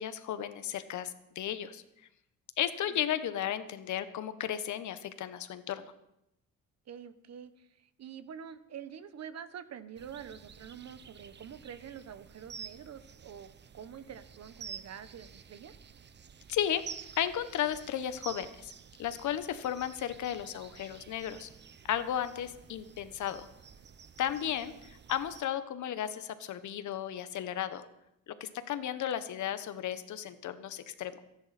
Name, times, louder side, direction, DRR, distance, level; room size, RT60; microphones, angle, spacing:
voice 1, 0.0-1.8 2.6-5.9 16.5-16.8 17.2-18.7 19.0-21.5 21.9-23.5 24.2-27.8 28.3-31.2, left 10 dB, 75° left, 11 dB, 1.3 m, -34 dB
voice 2, 6.9-15.7 24.4-24.9, right 8 dB, 60° right, 13 dB, 1.2 m, -47 dB
sound 1, 10.0-25.5, right 7 dB, 35° right, 0.9 m, -50 dB
23.0 x 10.5 x 4.4 m, 0.83 s
cardioid pair, 90°, 30 cm